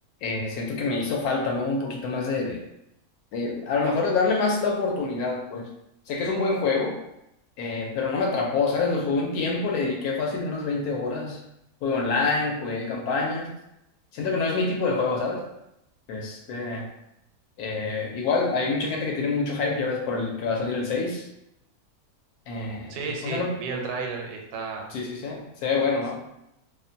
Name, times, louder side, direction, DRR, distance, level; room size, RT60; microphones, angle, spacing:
voice 1, 0.2-2.6 3.3-5.7 6.1-7.0 7.6-11.4 11.8-13.5 14.1-15.4 16.1-16.9 17.6-21.3 22.5-23.0 23.2-23.5 24.9-26.2, left 4 dB, 80° left, 0 dB, 1.1 m, -26 dB
voice 2, 22.9-24.9, right 4 dB, 80° right, 1 dB, 1.1 m, -32 dB
2.7 x 2.1 x 2.6 m, 0.82 s
omnidirectional pair, 1.6 m